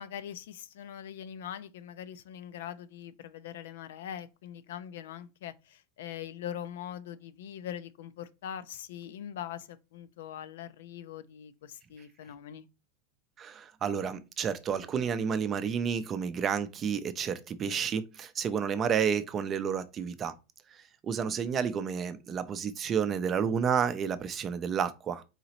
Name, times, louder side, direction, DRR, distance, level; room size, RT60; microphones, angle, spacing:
voice 1, 0.0-12.7, left 10 dB, 80° left, 0.4 m, -42 dB
voice 2, 13.4-20.3 21.0-25.2, right 7 dB, 25° right, 0.4 m, -30 dB
4.0 x 3.8 x 2.9 m
supercardioid pair, 155°, 0 cm